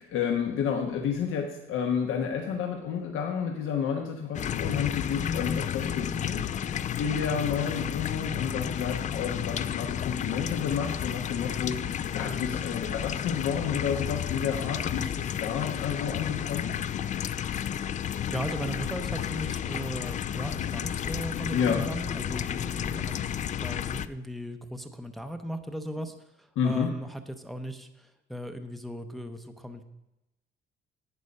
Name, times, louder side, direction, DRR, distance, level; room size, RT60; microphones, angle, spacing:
voice 1, 0.0-16.7 21.5-21.9 26.6-26.9, left 7 dB, 75° left, 3 dB, 1.1 m, -30 dB
sound 1, 4.3-24.1, left 9 dB, 35° left, 0.4 m, -32 dB
voice 2, 18.3-29.8, equal, ahead, 6 dB, 0.6 m, -37 dB
11.0 x 8.6 x 5.3 m, 0.92 s
cardioid pair, 155°, 21 cm